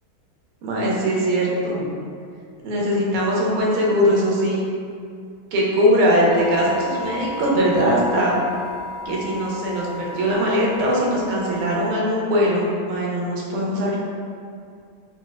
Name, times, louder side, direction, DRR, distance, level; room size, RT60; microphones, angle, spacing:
voice 1, 0.6-1.9 2.6-4.6 5.5-8.4 9.0-14.0, equal, 85° right, -4 dB, 1.5 m, -21 dB
sound 1, 6.3-11.9, left 2 dB, 90° left, 1.5 m, -34 dB
4.5 x 2.0 x 2.2 m, 2.4 s
omnidirectional pair, 2.3 m